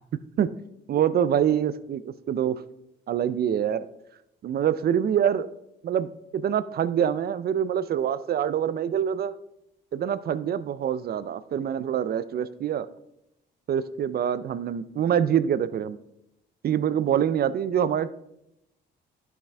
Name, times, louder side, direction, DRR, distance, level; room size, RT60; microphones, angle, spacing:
voice 1, 0.9-2.6 3.1-3.9 4.4-5.5 5.8-9.4 9.9-12.9 13.7-16.0 16.6-18.1, right 9 dB, 50° right, 14 dB, 0.5 m, -25 dB
11.0 x 5.9 x 3.4 m, 0.84 s
cardioid pair, 90°, 20 cm